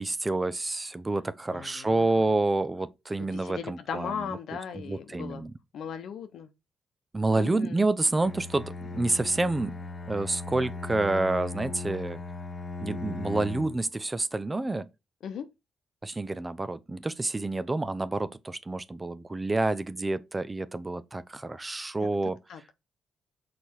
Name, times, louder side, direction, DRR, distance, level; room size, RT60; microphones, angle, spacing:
voice 1, 0.0-4.4 4.7-5.5 7.1-9.8 10.1-12.2 12.8-14.9 16.0-22.4, right 2 dB, 25° right, 0.6 m, -28 dB
voice 2, 1.5-2.3 3.2-5.4 5.7-6.5 7.4-7.8 15.2-15.5 22.0-22.1 22.5-22.7, left 7 dB, 75° left, 0.8 m, -38 dB
Bowed string instrument, 8.2-13.9, left 3 dB, 40° left, 1.3 m, -38 dB
6.3 x 4.2 x 4.4 m
supercardioid pair, 50°, 0 cm